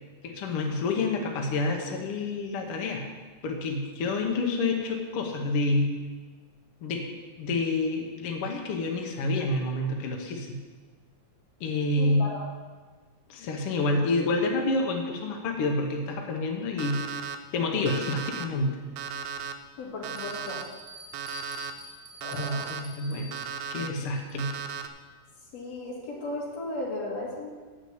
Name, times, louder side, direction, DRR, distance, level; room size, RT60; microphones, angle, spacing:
voice 1, 0.2-3.0 3.4-6.0 6.8-7.1 7.4-10.6 11.6-12.3 13.3-17.3 17.5-18.8 22.3-23.4 23.7-24.5, left 2 dB, 75° left, 2 dB, 1.3 m, -28 dB
voice 2, 12.0-12.4 19.8-20.6 22.2-22.7 25.5-27.5, left 2 dB, 50° left, -3 dB, 3.0 m, -35 dB
Alarm, 16.8-17.4 17.9-18.5 19.0-19.5 20.0-20.6 21.1-21.7 22.2-22.8 23.3-23.9 24.4-24.9, right 6 dB, 85° right, 2.3 m, -36 dB
Bell, 20.1-24.6, left 1 dB, 25° right, 1.5 m, -48 dB
8.2 x 6.4 x 8.0 m, 1.4 s
omnidirectional pair, 4.0 m